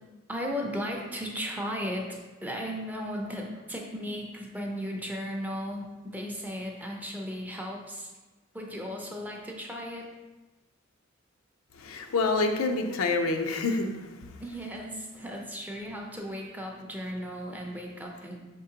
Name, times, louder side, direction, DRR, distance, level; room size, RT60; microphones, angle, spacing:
voice 1, 0.3-8.1 8.5-10.1 14.4-18.4, equal, 10° right, 0 dB, 0.5 m, -36 dB
voice 2, 11.7-14.7 15.3-15.4, left 3 dB, 85° left, 4 dB, 0.5 m, -28 dB
5.1 x 3.7 x 2.8 m, 1.2 s
head